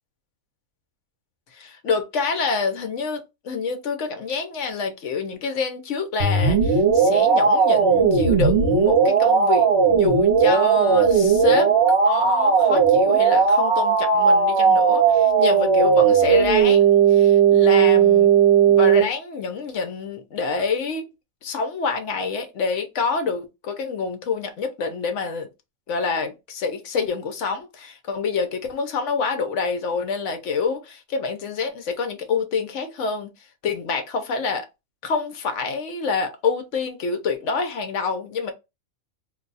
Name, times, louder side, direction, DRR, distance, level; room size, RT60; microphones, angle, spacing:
voice 1, 1.5-11.7 12.0-18.3 18.7-21.1 21.4-25.5 25.9-33.3 33.6-34.7 35.0-38.5, left 4 dB, 65° left, 1.0 m, -27 dB
sound 1, 6.2-19.0, right 6 dB, 50° right, 1.0 m, -17 dB
2.6 x 2.3 x 3.9 m
omnidirectional pair, 1.5 m